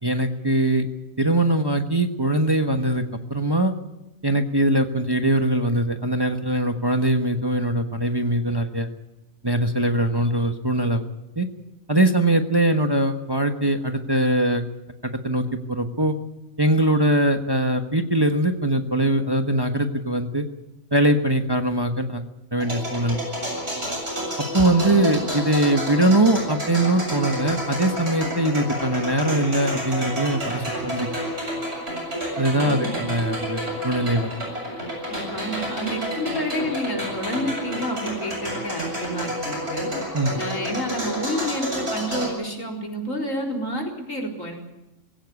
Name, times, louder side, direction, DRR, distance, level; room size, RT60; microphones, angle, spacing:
voice 1, 0.0-0.9 1.2-3.0 3.3-3.7 4.2-8.9 9.4-11.0 11.4-11.5 11.9-14.6 15.0-16.1 16.6-20.5 20.9-22.2 22.5-23.2 24.5-31.1 32.4-34.3 40.1-40.4, right 1 dB, 20° right, 5 dB, 1.3 m, -22 dB
sound 1, 22.6-42.3, equal, 50° right, 7.8 m, -30 dB
voice 2, 32.5-33.0 35.1-39.9 40.4-44.5, equal, 75° left, 0 dB, 4.5 m, -29 dB
20.5 x 17.0 x 8.3 m, 0.94 s
omnidirectional pair, 1.4 m